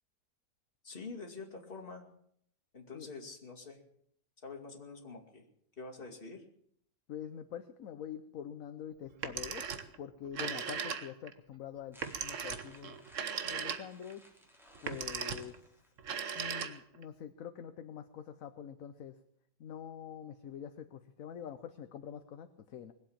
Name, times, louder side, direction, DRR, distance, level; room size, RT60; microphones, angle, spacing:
voice 1, 0.8-2.1 2.7-3.8 4.4-5.4 5.8-6.4, left 4 dB, 30° left, 0 dB, 2.6 m, -46 dB
voice 2, 7.1-9.6 10.0-13.0 13.4-14.2 14.8-15.8 16.3-19.1 19.6-22.9, left 9 dB, 60° left, 9 dB, 1.2 m, -45 dB
Telephone, 9.1-10.0 10.3-11.3 12.0-14.1 14.7-15.6 16.0-17.0, right 7 dB, 50° right, 1.3 m, -38 dB
sound 1, 11.9-16.1, equal, ahead, 2.9 m, -59 dB
21.0 x 8.1 x 8.6 m, 0.69 s
omnidirectional pair, 1.8 m